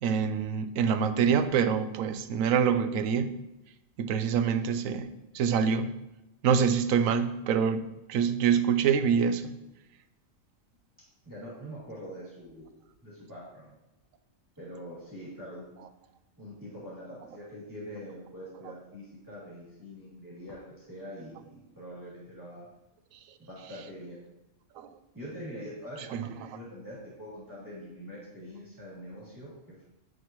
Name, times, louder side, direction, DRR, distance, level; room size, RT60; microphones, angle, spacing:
voice 1, 0.0-3.3 4.0-5.1 5.3-5.9 6.4-9.5 24.8-24.9, right 7 dB, 85° right, 10 dB, 1.0 m, -25 dB
voice 2, 11.2-13.7 14.6-15.7 16.4-22.7 23.4-24.2 25.1-29.5, equal, 15° right, -9 dB, 2.7 m, -44 dB
9.2 x 6.1 x 3.0 m, 0.94 s
omnidirectional pair, 1.4 m